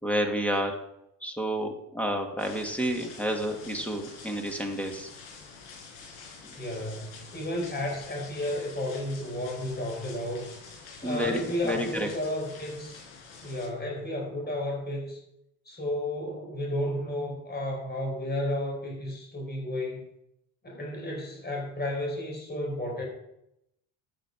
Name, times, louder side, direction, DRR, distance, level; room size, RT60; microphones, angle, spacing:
voice 1, 0.0-0.8 1.2-5.1 6.4-6.5 11.0-12.1, equal, 5° left, 3 dB, 2.3 m, -30 dB
sound 1, 2.4-13.7, left 5 dB, 75° left, 5.3 m, -47 dB
voice 2, 6.6-10.5 11.0-13.0 13.4-15.2 15.6-20.0 20.6-23.0, left 1 dB, 20° left, 0 dB, 4.6 m, -32 dB
14.0 x 9.2 x 4.8 m, 0.82 s
supercardioid pair, 110°, 49 cm